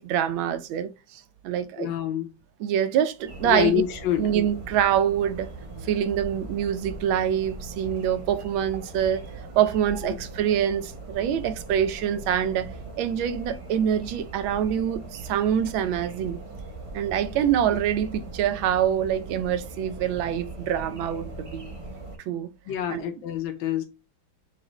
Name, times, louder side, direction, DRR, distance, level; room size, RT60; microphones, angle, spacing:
voice 1, 0.0-1.9 2.6-3.8 4.2-5.5 5.8-9.2 9.6-12.7 13.0-16.4 16.9-21.8 22.3-22.5 22.9-23.0, right 9 dB, 85° right, 1.4 m, -25 dB
voice 2, 1.8-2.3 3.4-4.3 22.7-23.8, left 10 dB, 80° left, 1.4 m, -26 dB
sound 1, 3.3-22.2, right 2 dB, 45° right, 0.4 m, -40 dB
6.0 x 2.5 x 3.0 m
omnidirectional pair, 2.1 m